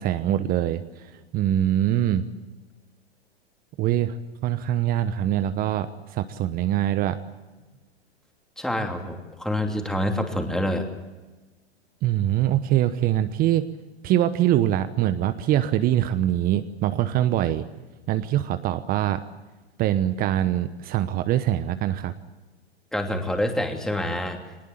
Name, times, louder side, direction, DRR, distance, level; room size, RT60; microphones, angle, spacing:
voice 1, 0.0-2.2 3.8-4.2 4.4-7.2 12.0-13.7 14.0-17.7 18.1-19.2 19.8-22.1, right 12 dB, 30° right, 12 dB, 1.0 m, -23 dB
voice 2, 8.6-10.8 22.9-24.4, left 1 dB, ahead, 4 dB, 2.9 m, -27 dB
23.5 x 19.5 x 8.9 m, 1.2 s
figure-of-eight pair, 105°, 32 cm